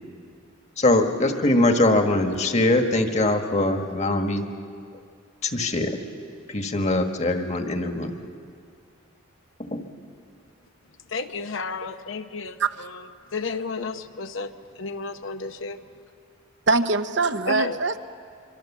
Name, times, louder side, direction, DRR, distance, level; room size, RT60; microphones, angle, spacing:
voice 1, 0.8-4.4 5.4-6.0 6.5-8.1 9.7-9.8, left 2 dB, 35° left, 5 dB, 1.5 m, -22 dB
voice 2, 11.1-15.8 17.5-17.8, left 3 dB, 75° left, 8 dB, 0.9 m, -32 dB
voice 3, 16.7-18.0, right 3 dB, 60° right, 9 dB, 0.8 m, -22 dB
25.0 x 24.5 x 7.3 m, 2.3 s
head